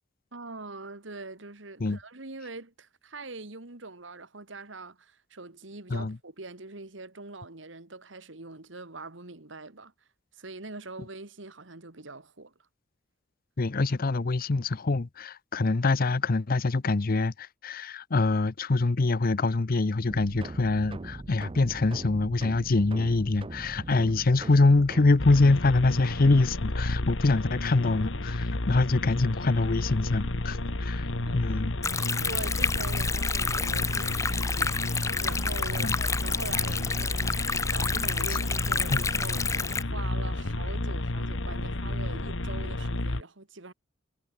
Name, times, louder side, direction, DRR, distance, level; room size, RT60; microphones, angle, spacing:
voice 1, 0.3-9.9 10.3-12.5 31.3-31.4 32.2-43.7, right 3 dB, 70° right, 2.1 m, -43 dB
voice 2, 13.6-31.1 31.3-31.8 35.8-36.1 38.9-39.0, left 3 dB, 50° left, 0.7 m, -25 dB
sound 1, 20.1-25.2, right 2 dB, 30° right, 0.7 m, -40 dB
sound 2, 25.2-43.2, left 1 dB, 70° left, 1.7 m, -31 dB
Stream, 31.8-39.8, left 4 dB, 15° left, 0.8 m, -30 dB
head